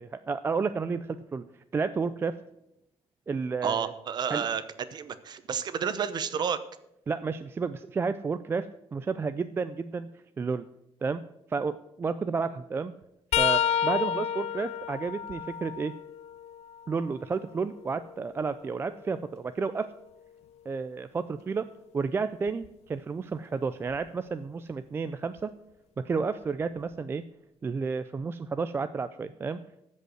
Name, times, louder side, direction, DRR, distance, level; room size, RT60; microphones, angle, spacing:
voice 1, 0.0-1.4 1.7-2.4 3.3-3.9 4.3-4.5 7.1-8.7 8.9-10.1 10.4-10.7 11.0-11.2 11.5-12.9 13.4-15.9 16.9-19.9 20.7-21.7 21.9-25.5 26.0-27.2 27.6-29.6, right 5 dB, 20° right, 11 dB, 0.3 m, -31 dB
voice 2, 3.6-4.6 4.9-6.6, right 7 dB, 40° right, 13 dB, 0.8 m, -30 dB
sound 1, 13.3-17.1 17.6-19.6 22.5-22.7 23.9-24.1 25.4-25.5, left 9 dB, 80° left, 0.6 m, -31 dB
14.5 x 5.4 x 7.7 m, 0.85 s
cardioid pair, 165°, 11 cm